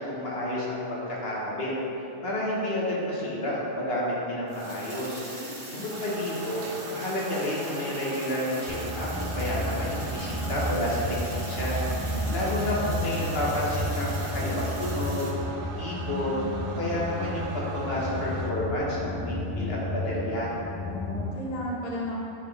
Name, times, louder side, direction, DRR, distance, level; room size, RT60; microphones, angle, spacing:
voice 1, 0.0-6.6 6.9-11.0 11.3-16.3 16.7-20.5, left 1 dB, 75° left, -5 dB, 1.5 m, -30 dB
sound 1, 4.5-15.3, right 1 dB, 30° right, 1.1 m, -42 dB
voice 2, 5.3-5.9 12.0-12.3 15.9-16.7 20.8-22.2, left 1 dB, 40° left, -4 dB, 0.9 m, -36 dB
sound 2, 5.9-18.5, right 3 dB, 70° right, 0.8 m, -40 dB
sound 3, 8.7-21.3, equal, 15° left, 0.6 m, -32 dB
9.3 x 4.2 x 3.3 m, 2.9 s
omnidirectional pair, 1.0 m